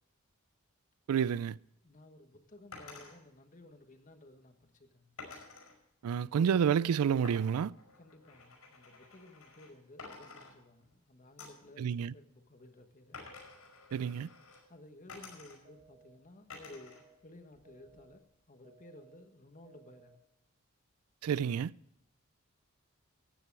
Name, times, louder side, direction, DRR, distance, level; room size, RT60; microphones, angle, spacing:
voice 1, 1.1-1.6 6.0-7.7 11.8-12.1 13.9-14.3 21.2-21.7, right 7 dB, 85° right, 0.3 m, -29 dB
voice 2, 1.8-5.2 8.0-13.2 14.7-20.2, left 1 dB, 35° left, 1.4 m, -56 dB
sound 1, 2.7-3.1 5.2-5.7 7.2-9.7 10.0-11.0 11.4-11.7 13.1-14.6 15.1-15.8 16.5-17.0 17.4-18.2, left 3 dB, 85° left, 5.3 m, -51 dB
sound 2, 15.6-16.1 16.6-17.1 17.6-18.1 18.6-19.1 19.6-20.1, right 5 dB, 45° right, 1.8 m, -62 dB
14.5 x 9.8 x 4.7 m
head